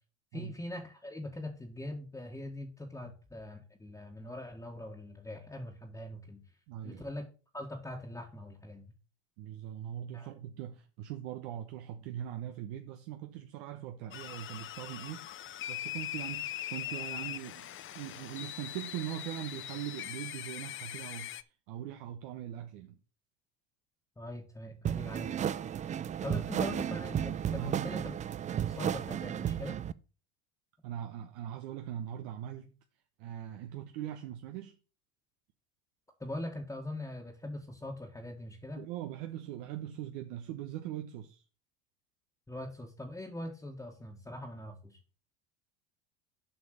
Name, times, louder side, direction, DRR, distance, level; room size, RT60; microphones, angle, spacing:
voice 1, 0.3-6.4 6.8-7.3 7.5-8.9 10.1-10.3 24.2-25.3 26.2-28.1 28.6-29.8 36.2-38.8 42.5-45.0, left 1 dB, 10° left, 1.7 m, -42 dB
voice 2, 6.7-7.1 9.4-15.3 15.7-21.3 21.7-23.0 26.6-26.7 27.5-27.9 30.8-32.7 33.2-34.8 38.8-41.4, right 11 dB, 70° right, 1.1 m, -41 dB
sound 1, 14.1-21.4, left 12 dB, 35° left, 0.7 m, -41 dB
sound 2, 24.8-29.9, right 9 dB, 20° right, 0.4 m, -33 dB
7.8 x 5.3 x 6.6 m
supercardioid pair, 95°, 34 cm